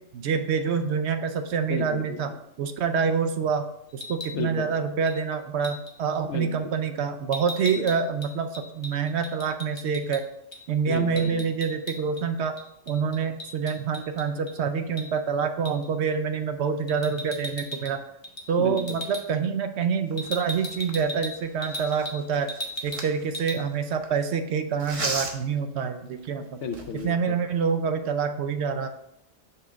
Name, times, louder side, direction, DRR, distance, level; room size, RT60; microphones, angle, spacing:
voice 1, 0.1-3.7 3.9-10.2 10.7-12.5 12.9-18.0 18.5-22.5 22.8-26.6 26.9-28.9, right 6 dB, 65° right, 7 dB, 0.8 m, -27 dB
voice 2, 1.7-2.2 4.3-4.7 6.3-6.7 7.7-7.8 10.8-11.4 18.6-19.0 26.6-27.3, left 5 dB, 70° left, 8 dB, 0.9 m, -32 dB
sound 1, 3.9-4.4 5.1-5.2 5.6-5.9 7.3-10.2 10.5-10.6 10.9-12.2 12.6-14.5 15.0-15.1 15.6-15.9 16.9-18.0 18.2-18.5 18.8-19.2 20.2-22.2 22.5-23.1 23.3-23.6, equal, 30° left, 0.6 m, -37 dB
sound 2, 20.1-24.1 24.8-25.6 26.2-26.3 26.6-27.2, right 2 dB, 35° right, 0.7 m, -36 dB
5.6 x 3.5 x 5.1 m, 0.78 s
omnidirectional pair, 1.3 m